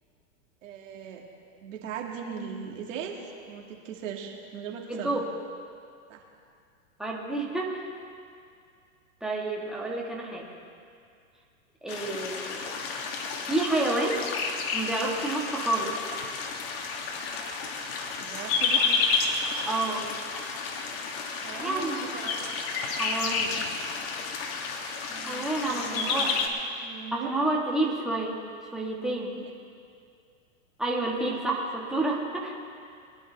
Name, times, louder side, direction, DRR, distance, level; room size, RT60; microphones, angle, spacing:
voice 1, 0.6-1.2 1.6-3.2 3.5-5.1 6.1-6.2 18.2-18.9 21.4-22.3 25.1-26.5 26.8-27.3, right 7 dB, 60° right, 0 dB, 2.5 m, -39 dB
voice 2, 4.9-5.3 7.0-7.8 9.2-10.5 11.8-12.7 13.4-14.2 14.7-16.0 19.6-20.1 21.6-22.0 22.9-23.6 25.2-26.3 27.1-28.3 28.7-29.3 30.8-32.5, right 2 dB, ahead, -3 dB, 1.7 m, -29 dB
sound 1, 11.9-26.5, left 4 dB, 45° left, 1.7 m, -31 dB
23.0 x 11.0 x 3.5 m, 2.3 s
hypercardioid pair, 145°, 42 cm